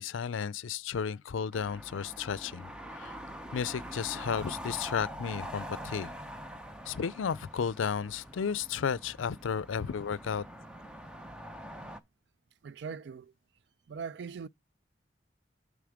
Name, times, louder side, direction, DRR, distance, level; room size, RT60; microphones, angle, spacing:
voice 1, 0.0-3.1 3.5-6.1 6.9-10.4, left 6 dB, 85° left, 0.4 m, -33 dB
sound 1, 1.5-12.0, equal, 5° right, 0.6 m, -44 dB
voice 2, 12.6-13.3 13.9-14.5, right 6 dB, 60° right, 0.4 m, -40 dB
9.4 x 3.7 x 4.9 m
head